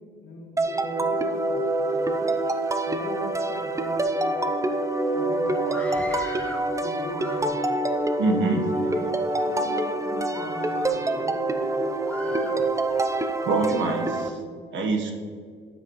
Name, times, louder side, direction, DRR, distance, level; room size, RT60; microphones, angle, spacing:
voice 1, 0.0-2.3 2.9-4.6 5.1-7.8 8.4-9.1 9.4-11.9 12.2-12.7, left 2 dB, 75° left, 1 dB, 1.8 m, -40 dB
sound 1, 0.6-14.3, right 2 dB, 15° right, 0.6 m, -26 dB
Screaming, 5.6-6.7 7.1-7.8 8.5-9.1 9.6-9.8 10.3-11.3 12.0-13.1, left 1 dB, 5° left, 1.2 m, -41 dB
voice 2, 8.2-8.6 13.4-14.4 14.7-15.1, right 3 dB, 70° right, 3 dB, 1.3 m, -24 dB
9.6 x 7.5 x 3.1 m, 2.1 s
cardioid pair, 90°, 20 cm